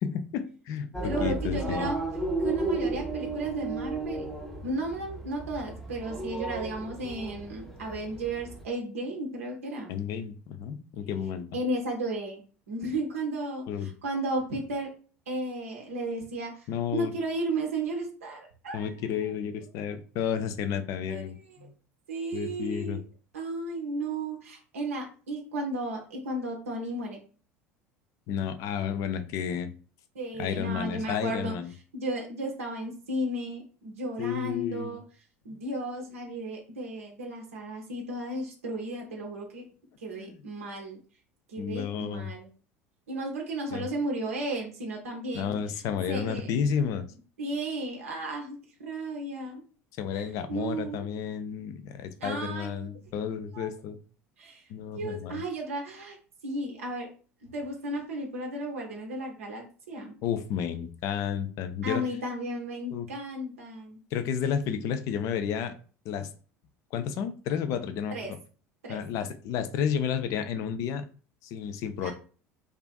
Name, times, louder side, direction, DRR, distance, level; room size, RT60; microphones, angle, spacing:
voice 1, 0.0-1.9 9.9-11.5 13.7-13.9 16.7-17.1 18.7-21.7 22.3-23.0 28.3-29.7 30.4-31.7 34.2-35.0 35.5-35.6 40.1-40.4 41.6-42.3 43.7-43.9 45.3-47.1 50.0-54.0 54.7-55.4 60.2-62.0 62.9-63.1 64.1-65.7 66.1-66.3 66.9-68.2 68.9-71.1 71.4-72.1, left 8 dB, 45° left, 10 dB, 0.3 m, -31 dB
sound 1, 0.9-8.6, right 2 dB, ahead, 0.6 m, -34 dB
voice 2, 1.0-2.0 2.4-4.3 4.6-9.9 11.5-14.9 15.3-18.9 21.1-21.2 21.6-21.7 22.1-23.0 23.3-27.2 30.1-31.6 31.9-35.0 35.4-39.6 40.0-41.0 41.5-42.5 43.1-45.5 46.1-46.5 47.4-49.6 50.1-51.0 52.2-52.9 53.2-53.3 53.5-53.7 54.4-54.7 54.9-56.2 56.4-57.1 57.4-60.1 61.8-64.0 68.1-68.3 68.8-69.0 72.0-72.1, right 1 dB, 70° right, 1 dB, 0.5 m, -34 dB
2.4 x 2.4 x 2.3 m, 0.39 s
figure-of-eight pair, 70°, 8 cm